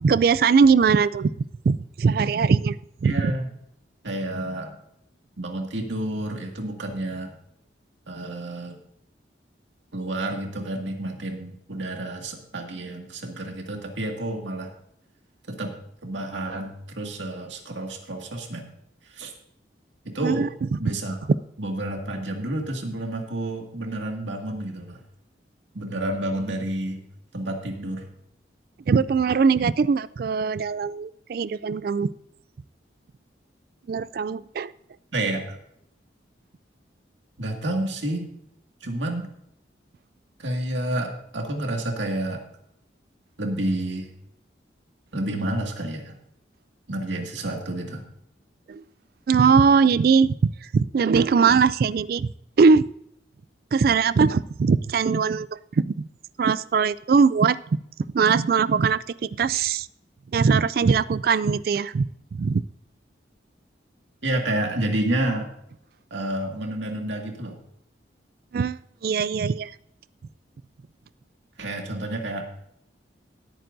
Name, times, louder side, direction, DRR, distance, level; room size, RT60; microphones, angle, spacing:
voice 1, 0.0-1.3 1.7-2.8 3.0-3.1 20.2-20.5 28.9-32.1 33.9-34.7 48.7-48.8 49.3-50.4 50.7-52.3 52.6-52.8 53.7-55.5 55.8-56.1 56.4-57.6 58.1-59.0 59.4-59.9 60.3-62.1 62.3-62.6 68.5-69.7, right 5 dB, 55° right, 18 dB, 0.3 m, -20 dB
voice 2, 3.0-3.5 4.0-4.8 5.4-7.4 8.1-8.8 9.9-14.7 15.5-15.7 16.0-18.7 19.1-19.3 20.1-20.5 20.8-21.2 21.6-25.0 25.7-27.0 27.3-28.1 35.1-35.6 37.4-38.3 38.8-39.3 40.4-42.4 43.4-44.1 45.1-46.1 46.9-48.0 64.2-65.5 66.1-67.6 71.6-72.5, right 1 dB, 85° right, 2 dB, 2.1 m, -29 dB
18.0 x 9.0 x 2.7 m, 0.75 s
head